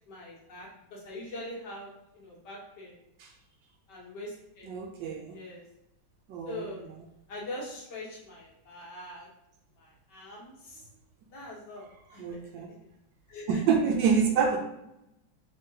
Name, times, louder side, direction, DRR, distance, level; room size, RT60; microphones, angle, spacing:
voice 1, 0.1-3.0 3.9-4.7 5.3-5.6 6.5-6.8 7.3-9.3 9.8-10.8 11.3-12.2 13.3-13.6, left 1 dB, 60° left, -5 dB, 1.6 m, -43 dB
voice 2, 4.6-5.3 6.3-6.7 12.2-12.7 13.5-14.6, right 6 dB, 75° right, 3 dB, 1.2 m, -27 dB
3.7 x 3.6 x 2.7 m, 0.84 s
omnidirectional pair, 2.2 m